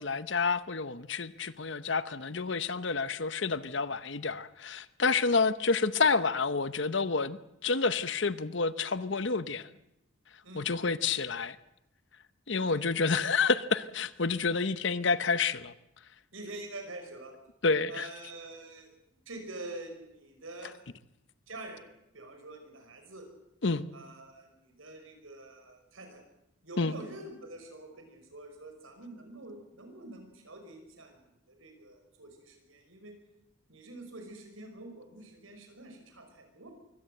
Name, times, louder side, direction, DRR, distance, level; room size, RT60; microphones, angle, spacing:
voice 1, 0.0-9.7 10.5-11.6 12.5-15.7 17.6-18.1 23.6-23.9 26.8-26.9, left 4 dB, 60° left, 0.9 m, -29 dB
voice 2, 16.3-17.3 17.9-18.9 19.3-20.7 21.5-21.9 22.1-23.3 23.9-26.2 26.6-33.1 33.7-36.7, right 2 dB, 80° right, 5.6 m, -46 dB
23.5 x 17.0 x 7.9 m
head